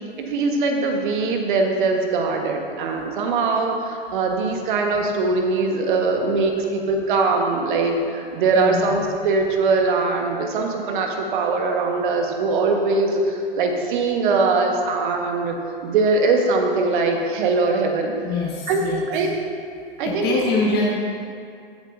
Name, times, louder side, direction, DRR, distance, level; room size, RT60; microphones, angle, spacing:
voice 1, 0.2-15.6 15.8-18.1 18.7-19.4 20.0-20.4, right 3 dB, 60° right, 3 dB, 1.4 m, -21 dB
voice 2, 8.5-9.0 18.2-19.0 20.0-20.9, left 3 dB, 35° left, -3 dB, 1.4 m, -24 dB
16.0 x 7.7 x 2.7 m, 2.3 s
figure-of-eight pair, 95°, 29 cm